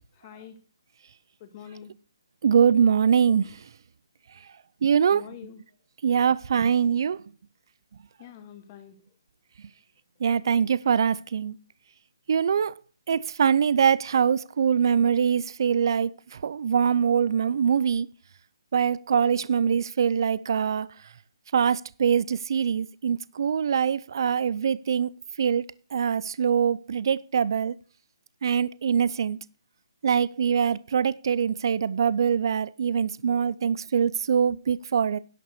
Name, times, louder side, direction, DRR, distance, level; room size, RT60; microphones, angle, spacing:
voice 1, 0.2-0.6 1.4-1.9 5.1-5.6 8.2-9.0, left 9 dB, 25° left, 1.7 m, -45 dB
voice 2, 2.4-3.5 4.8-5.2 6.0-7.2 10.2-11.5 12.3-12.7 13.1-16.1 16.4-18.1 18.7-20.9 21.5-25.1 25.4-27.7 28.4-29.4 30.0-35.2, right 7 dB, 55° right, 0.5 m, -23 dB
11.0 x 6.0 x 6.8 m
hypercardioid pair, 160°, 3 cm